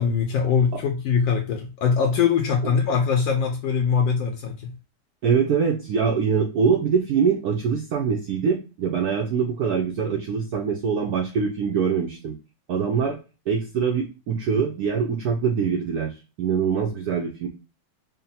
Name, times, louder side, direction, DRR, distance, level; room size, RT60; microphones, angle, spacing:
voice 1, 0.0-4.7, left 6 dB, 75° left, 3 dB, 1.2 m, -22 dB
voice 2, 5.2-12.3 12.7-13.2 13.5-17.5, right 6 dB, 90° right, 2 dB, 0.8 m, -23 dB
3.9 x 2.1 x 4.0 m, 0.31 s
omnidirectional pair, 2.3 m